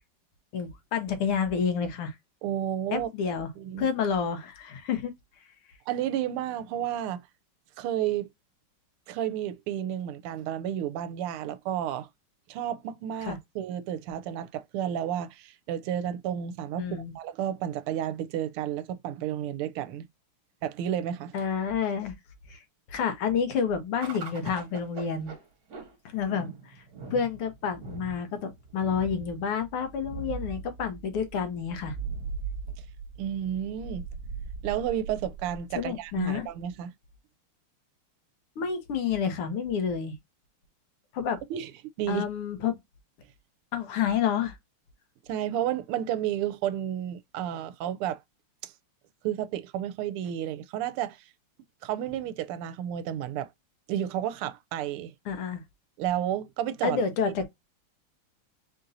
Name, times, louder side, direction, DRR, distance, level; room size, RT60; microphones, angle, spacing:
voice 1, 0.5-2.2 2.9-3.5 3.8-5.1 13.2-13.4 16.8-17.1 21.3-22.2 22.5-22.6 22.9-25.3 26.1-26.8 27.1-32.0 35.8-36.5 38.6-40.2 41.1-41.4 42.1-42.7 43.7-44.6 55.3-55.6 56.8-57.4, left 7 dB, 80° left, 1.9 m, -29 dB
voice 2, 2.4-3.1 3.6-3.9 5.9-7.2 7.8-8.3 9.1-12.1 12.5-16.9 17.1-20.0 20.6-21.3 33.2-34.0 34.6-36.9 41.5-41.7 42.0-42.3 45.3-48.2 48.6-48.7 49.2-51.2 51.8-53.5 53.9-55.1 56.0-57.0, right 10 dB, 80° right, 1.4 m, -31 dB
sound 1, 24.0-36.6, right 4 dB, 50° right, 1.5 m, -40 dB
4.4 x 2.6 x 3.9 m
omnidirectional pair, 2.4 m